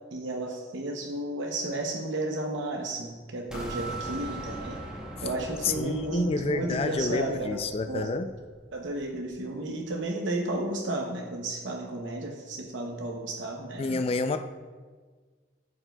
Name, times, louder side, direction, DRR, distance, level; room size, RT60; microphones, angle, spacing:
voice 1, 0.1-4.8 5.2-8.2 8.7-14.0, right 2 dB, 90° right, 1 dB, 0.7 m, -33 dB
Keyboard (musical), 3.5-5.9, right 5 dB, 55° left, 1.2 m, -42 dB
sound 1, 3.5-9.3, equal, 5° right, 0.8 m, -43 dB
voice 2, 5.6-8.3 13.8-14.4, left 3 dB, 30° left, 9 dB, 0.3 m, -29 dB
13.0 x 4.5 x 2.2 m, 1.5 s
head